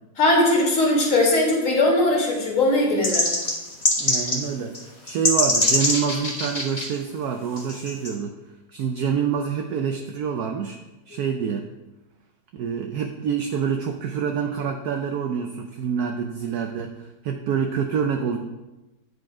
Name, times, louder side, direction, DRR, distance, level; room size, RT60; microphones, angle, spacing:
voice 1, 0.2-3.3, left 2 dB, 45° left, -2 dB, 2.3 m, -19 dB
sound 1, 3.0-4.4 4.7-4.8 5.1-6.9 7.6-8.1, left 2 dB, 25° left, 1.1 m, -22 dB
voice 2, 4.0-8.3 8.7-10.8 11.1-11.7 12.5-18.4, right 7 dB, 70° right, 4 dB, 1.0 m, -26 dB
9.5 x 5.1 x 4.8 m, 1.1 s
omnidirectional pair, 2.1 m